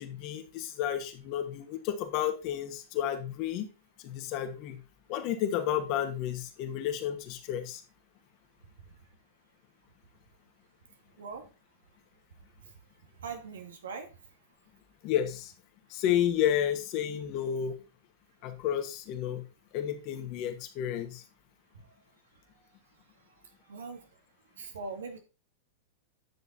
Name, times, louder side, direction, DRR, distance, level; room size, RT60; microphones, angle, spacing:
voice 1, 0.0-3.7 4.0-4.8 5.1-7.8 15.0-15.5 15.9-17.8 18.4-19.5 19.7-21.2, left 10 dB, 50° left, 6 dB, 2.1 m, -31 dB
voice 2, 13.2-14.1 23.7-24.1 24.6-25.2, right 4 dB, 80° right, 5 dB, 2.4 m, -40 dB
10.5 x 6.5 x 4.2 m, 0.30 s
hypercardioid pair, 100°, 0 cm